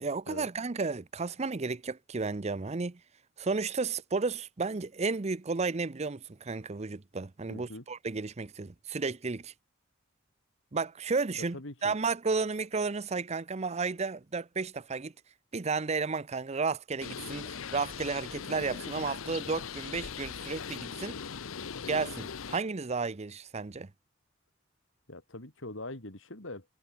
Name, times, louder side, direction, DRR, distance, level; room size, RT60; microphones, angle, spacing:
voice 1, 0.0-3.0 3.4-9.5 10.7-11.6 11.8-15.1 15.5-21.2 21.9-23.9, right 4 dB, 35° right, 0.6 m, -33 dB
voice 2, 7.5-7.8 11.5-11.9 21.6-21.8 25.1-26.7, left 2 dB, 65° left, 3.3 m, -43 dB
Bird, 17.0-22.6, left 6 dB, 90° left, 0.8 m, -40 dB
head